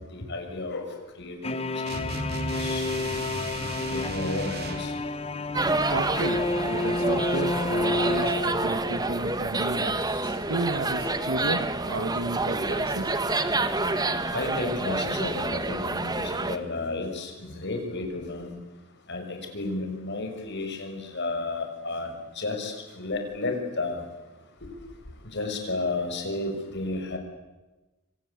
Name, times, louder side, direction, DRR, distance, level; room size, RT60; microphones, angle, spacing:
voice 1, 0.1-1.6 2.0-2.9 3.9-4.9 10.2-10.3 12.5-12.6 14.3-18.6 19.1-22.1 22.4-24.0 24.6-24.7 25.2-27.2, left 2 dB, 55° left, 5 dB, 6.2 m, -32 dB
sound 1, 1.4-9.2, left 2 dB, 30° left, 1.4 m, -30 dB
sound 2, 1.9-5.0, right 2 dB, 50° right, 3.3 m, -35 dB
sound 3, 5.5-16.6, right 2 dB, 20° right, 1.5 m, -28 dB
voice 2, 5.9-10.0 10.5-13.2, right 2 dB, 75° right, 9 dB, 2.2 m, -32 dB
27.5 x 25.5 x 8.5 m, 1.1 s
head